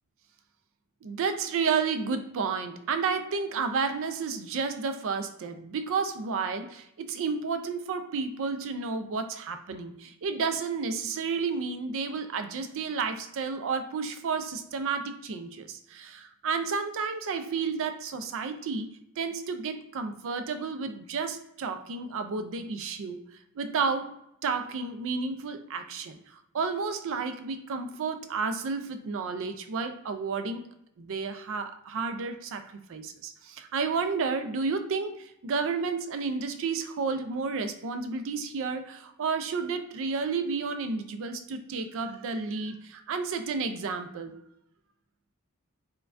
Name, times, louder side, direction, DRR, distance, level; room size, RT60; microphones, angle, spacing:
voice 1, 1.0-18.9 19.2-23.2 23.6-24.1 24.4-26.2 26.5-30.6 31.0-32.6 32.9-44.4, right 5 dB, 60° right, 8 dB, 0.4 m, -31 dB
4.5 x 2.2 x 2.4 m, 0.80 s
head